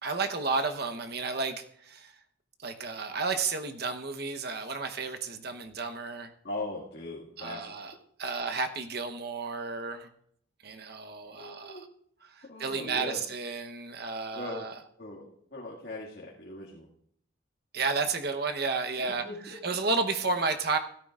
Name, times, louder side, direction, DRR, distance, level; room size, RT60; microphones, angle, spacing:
voice 1, 0.0-2.1 2.6-6.3 7.4-7.9 8.2-10.1 10.6-11.7 12.3-14.7 17.7-19.2 19.6-20.8, right 4 dB, 55° right, 6 dB, 1.0 m, -32 dB
voice 2, 6.4-7.8 11.3-11.9 12.4-13.2 14.3-14.7 15.0-16.9 19.0-19.6, left 2 dB, 55° left, -5 dB, 2.1 m, -40 dB
16.5 x 13.0 x 2.5 m, 0.66 s
head